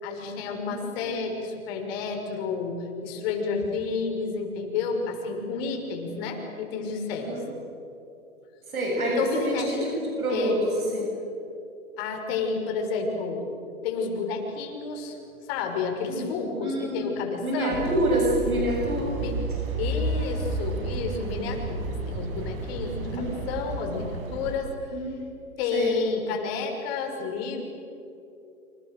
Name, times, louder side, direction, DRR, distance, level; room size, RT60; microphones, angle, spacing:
voice 1, 0.0-7.4 9.0-9.8 10.3-10.6 12.0-13.4 13.8-15.1 15.5-17.9 19.2-19.4 19.8-24.7 25.6-27.6, left 4 dB, 45° left, 3 dB, 5.9 m, -30 dB
voice 2, 0.7-1.1 6.1-6.2 7.3-7.5 8.7-11.1 16.1-16.3 16.6-17.1 17.4-19.1 23.0-23.3 24.9-25.1 25.7-25.9, right 1 dB, 85° right, -1 dB, 7.6 m, -27 dB
sound 1, 17.7-24.6, right 2 dB, 40° right, 5.2 m, -31 dB
29.5 x 27.0 x 6.8 m, 2.8 s
hypercardioid pair, 130°, 42 cm